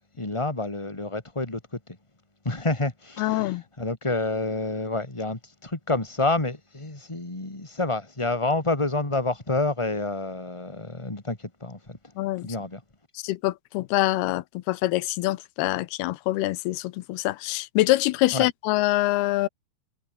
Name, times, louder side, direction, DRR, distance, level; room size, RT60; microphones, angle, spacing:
voice 1, 0.0-2.0 2.4-12.0 12.4-12.8 18.3-18.5, left 2 dB, 10° left, 1.9 m, -28 dB
voice 2, 3.2-3.6 12.2-12.5 13.2-19.5, left 18 dB, 80° left, 2.6 m, -25 dB
omnidirectional pair, 4.8 m